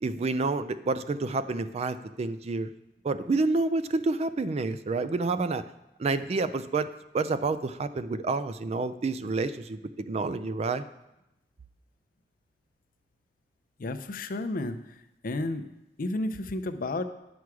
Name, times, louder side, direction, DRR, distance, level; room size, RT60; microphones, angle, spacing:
voice 1, 0.0-2.7 3.0-5.6 6.0-6.9 7.1-10.8, right 3 dB, 40° right, 13 dB, 0.4 m, -29 dB
voice 2, 13.8-14.8 15.2-15.6 16.0-17.0, left 2 dB, 55° left, 9 dB, 0.5 m, -31 dB
9.5 x 6.1 x 4.7 m, 0.91 s
head